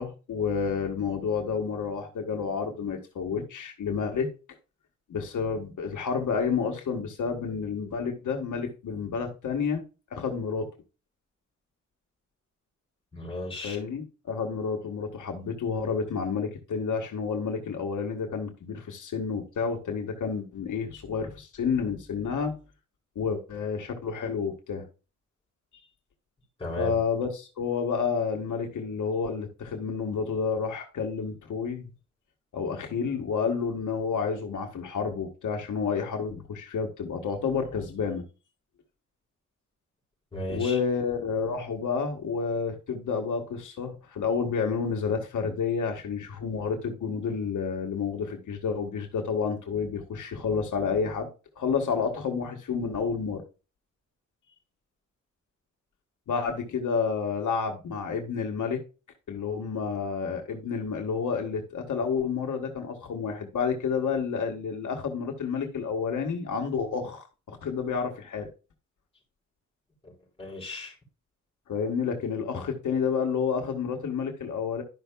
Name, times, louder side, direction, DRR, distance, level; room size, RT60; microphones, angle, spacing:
voice 1, 0.0-4.3 5.1-9.8 10.1-10.7 13.6-22.6 23.1-24.8 26.8-31.9 32.5-38.2 40.5-51.3 51.6-53.4 56.3-58.8 59.3-68.5 71.7-74.8, left 5 dB, 90° left, 1.6 m, -30 dB
voice 2, 13.1-13.8 26.6-27.0 40.3-40.8 70.0-70.1 70.4-70.9, left 1 dB, 20° left, 4.5 m, -35 dB
12.0 x 5.7 x 2.3 m
wide cardioid pair, 165°, 30 cm